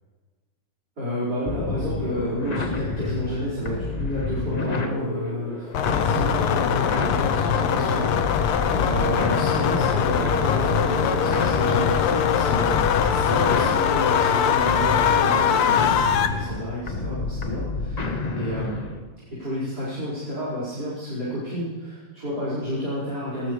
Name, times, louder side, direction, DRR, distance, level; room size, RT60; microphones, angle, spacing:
voice 1, 1.0-18.8 19.3-23.5, equal, 45° right, -9 dB, 5.7 m, -30 dB
sound 1, 1.5-19.1, left 3 dB, 70° left, 0.4 m, -30 dB
sound 2, 5.7-16.3, left 8 dB, 85° left, 1.8 m, -22 dB
20.0 x 18.0 x 3.3 m, 1.4 s
omnidirectional pair, 2.4 m